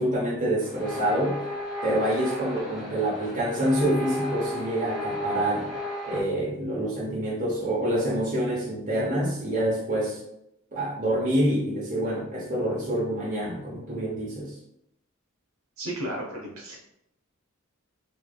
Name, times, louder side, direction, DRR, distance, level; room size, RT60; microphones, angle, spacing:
voice 1, 0.0-1.4 1.8-5.7 6.1-10.2 10.7-14.6, right 1 dB, 35° right, -5 dB, 0.8 m, -27 dB
Medium wave radio static noise & tones, 0.6-6.2, left 1 dB, ahead, 1.0 m, -34 dB
voice 2, 15.8-16.8, right 1 dB, 65° right, -2 dB, 1.0 m, -33 dB
3.4 x 3.0 x 2.2 m, 0.79 s
head